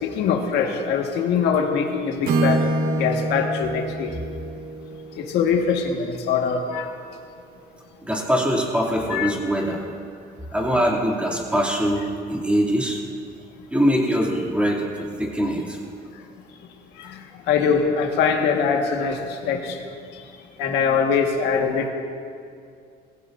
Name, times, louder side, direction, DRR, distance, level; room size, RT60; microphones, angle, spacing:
voice 1, 0.0-2.6 2.9-4.1 5.2-6.9 9.1-9.3 17.5-19.2 19.4-19.8 20.6-21.9, left 6 dB, 85° left, 2 dB, 1.7 m, -22 dB
Acoustic guitar / Strum, 2.2-6.2, right 2 dB, 65° right, 1.1 m, -26 dB
voice 2, 8.1-9.8 10.5-12.0 12.3-13.0 13.7-15.8, equal, 5° right, -3 dB, 2.8 m, -22 dB
20.5 x 16.0 x 2.7 m, 2.4 s
cardioid pair, 110°, 17 cm